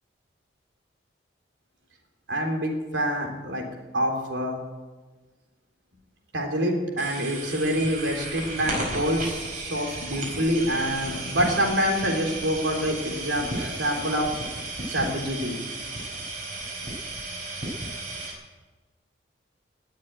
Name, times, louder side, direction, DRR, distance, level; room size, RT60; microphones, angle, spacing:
voice 1, 2.3-3.6 3.9-4.6 6.3-14.3 14.9-15.5, equal, 90° right, 1 dB, 3.8 m, -26 dB
sound 1, 7.0-18.3, right 2 dB, 45° right, 4.8 m, -34 dB
19.5 x 7.5 x 10.0 m, 1.3 s
head